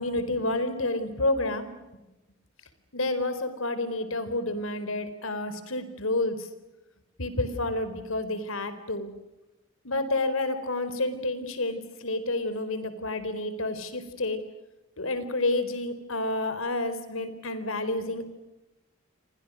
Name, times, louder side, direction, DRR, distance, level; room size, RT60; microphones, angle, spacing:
voice 1, 0.0-1.7 2.9-6.5 7.2-9.1 9.8-14.4 15.0-18.3, left 2 dB, 85° left, 11 dB, 4.2 m, -29 dB
30.0 x 25.5 x 6.3 m, 0.99 s
head